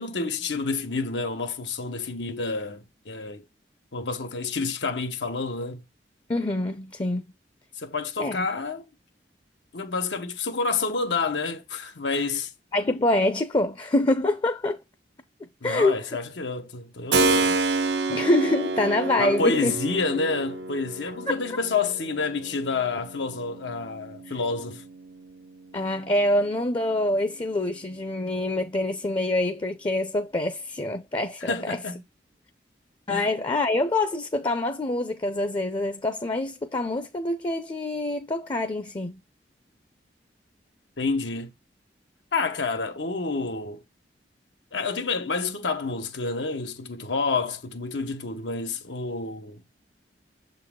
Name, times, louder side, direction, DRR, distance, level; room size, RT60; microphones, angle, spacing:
voice 1, 0.0-3.4 3.9-5.8 7.8-8.8 9.7-12.5 15.6-17.6 19.2-24.8 31.4-32.0 33.1-33.2 41.0-41.5 42.3-43.8 44.7-49.6, left 4 dB, 85° left, 1.0 m, -29 dB
voice 2, 6.3-7.2 8.2-8.5 12.7-14.8 15.6-16.0 18.1-19.7 25.7-31.8 33.1-39.1, left 2 dB, 25° left, 0.5 m, -25 dB
Keyboard (musical), 17.1-25.7, right 3 dB, 70° right, 0.6 m, -29 dB
7.0 x 4.0 x 3.6 m
head